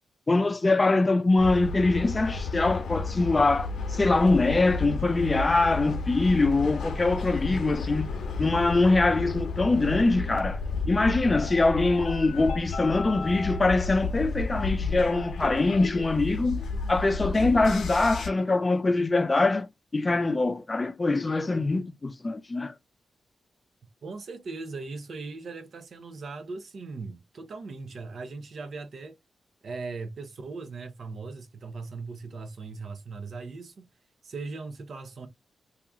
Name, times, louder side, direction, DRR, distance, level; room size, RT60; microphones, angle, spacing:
voice 1, 0.3-8.1 8.4-10.6 10.9-16.6 16.9-19.7 19.9-22.7, left 3 dB, 25° left, 0.4 m, -23 dB
sound 1, 1.4-18.3, left 4 dB, 85° left, 0.7 m, -32 dB
voice 2, 24.0-29.2 29.6-33.9 34.2-35.3, right 4 dB, 65° right, 0.7 m, -39 dB
2.9 x 2.4 x 3.5 m
cardioid pair, 95°, 0 cm